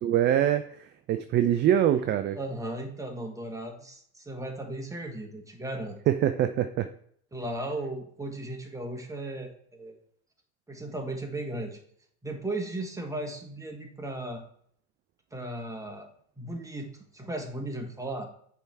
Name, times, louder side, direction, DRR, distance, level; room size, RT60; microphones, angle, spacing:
voice 1, 0.0-2.4 6.1-6.9, right 10 dB, 30° right, 10 dB, 0.4 m, -24 dB
voice 2, 2.4-6.0 7.3-9.9 10.7-11.8 12.2-14.4 15.3-16.1 16.4-18.3, right 1 dB, 10° right, 2 dB, 1.5 m, -36 dB
8.0 x 3.5 x 4.5 m, 0.64 s
figure-of-eight pair, 70°, 41 cm